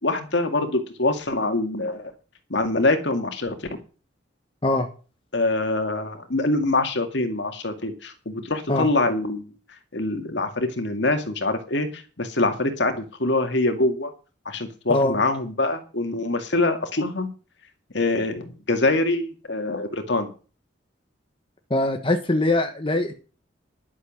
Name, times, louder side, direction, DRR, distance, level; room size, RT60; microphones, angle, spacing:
voice 1, 0.0-2.1 2.5-3.6 5.3-9.5 9.9-11.9 12.2-14.1 14.5-17.3 17.9-20.3, left 2 dB, 60° left, 6 dB, 2.2 m, -24 dB
voice 2, 21.7-23.1, left 2 dB, 25° left, 4 dB, 1.3 m, -22 dB
11.5 x 7.3 x 7.3 m, 0.35 s
head